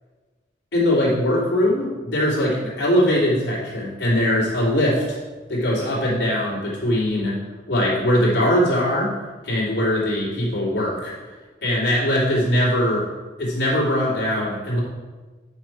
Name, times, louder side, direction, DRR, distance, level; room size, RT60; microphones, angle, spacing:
voice 1, 0.7-5.2 5.5-7.4 7.7-9.1 9.4-11.1 11.6-13.1 13.4-14.8, equal, 70° left, -6 dB, 3.0 m, -21 dB
9.8 x 5.6 x 4.6 m, 1.3 s
head